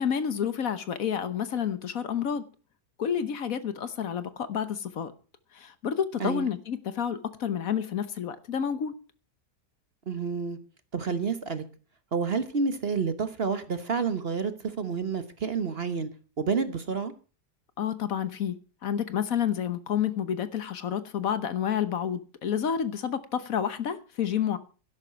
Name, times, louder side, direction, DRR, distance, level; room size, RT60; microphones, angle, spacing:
voice 1, 0.0-2.4 3.0-5.1 5.5-8.9 17.8-18.6 18.8-24.6, left 8 dB, 65° left, 1.4 m, -29 dB
voice 2, 10.1-10.6 10.9-11.6 12.1-16.1 16.4-17.1, right 5 dB, 40° right, 1.3 m, -29 dB
12.0 x 11.5 x 5.7 m
omnidirectional pair, 1.7 m